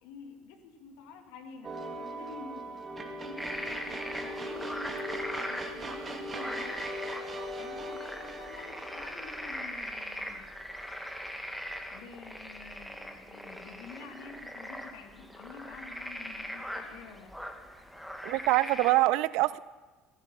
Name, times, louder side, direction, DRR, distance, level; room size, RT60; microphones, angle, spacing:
voice 1, 0.0-2.8 3.1-6.9 7.5-10.4 11.9-17.7, left 5 dB, 65° left, 5 dB, 2.1 m, -49 dB
sound 1, 1.6-10.9, right 1 dB, 25° right, 2.3 m, -40 dB
sound 2, 3.4-18.9, equal, ahead, 2.1 m, -41 dB
voice 2, 18.2-19.6, right 19 dB, 65° right, 19 dB, 0.5 m, -25 dB
16.5 x 15.0 x 5.6 m, 1.2 s
hypercardioid pair, 65°, 0 cm